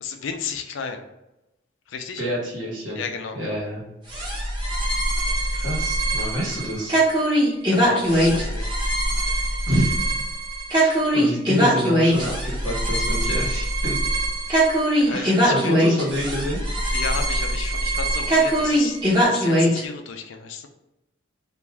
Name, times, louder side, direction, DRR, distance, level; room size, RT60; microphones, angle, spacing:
voice 1, 0.0-1.0 1.9-2.2 2.9-3.6 7.2-7.3 7.7-8.7 15.0-15.8 16.9-19.0 19.2-20.7, left 5 dB, 80° left, 6 dB, 0.4 m, -33 dB
voice 2, 2.2-3.0 3.3-3.8 5.5-6.9 9.7-10.0 10.7-14.0 15.1-16.6, equal, 80° right, -4 dB, 1.2 m, -27 dB
sound 1, 4.1-19.8, right 1 dB, 25° right, 0.8 m, -22 dB
2.5 x 2.3 x 3.2 m, 0.93 s
head